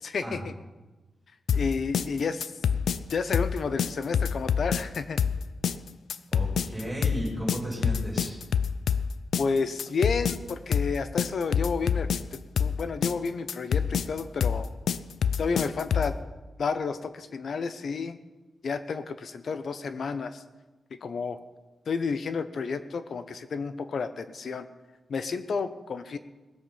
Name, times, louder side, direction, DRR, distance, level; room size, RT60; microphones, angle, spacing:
voice 1, 0.0-0.5 1.5-2.5 3.1-5.2 9.4-14.7 15.4-16.2 16.6-18.2 18.6-20.4 21.0-21.4 21.9-24.7 25.1-26.2, left 5 dB, 60° left, 11 dB, 0.8 m, -31 dB
sound 1, 1.5-16.2, left 7 dB, 90° left, 0.4 m, -27 dB
voice 2, 6.3-8.4, equal, 10° right, -5 dB, 5.3 m, -34 dB
20.0 x 7.3 x 5.7 m, 1.2 s
wide cardioid pair, 125°, 0 cm